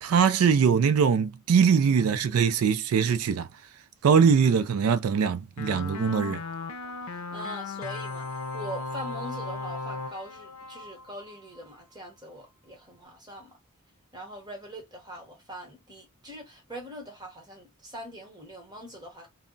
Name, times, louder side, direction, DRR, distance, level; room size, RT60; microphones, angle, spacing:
voice 1, 0.0-3.5 4.0-6.4, right 6 dB, 80° right, 0.3 m, -22 dB
sound 1, 5.6-11.7, left 3 dB, 85° left, 0.5 m, -36 dB
voice 2, 7.3-8.3 8.5-13.6 14.1-19.3, equal, 20° right, 1.0 m, -42 dB
2.2 x 2.0 x 3.8 m
head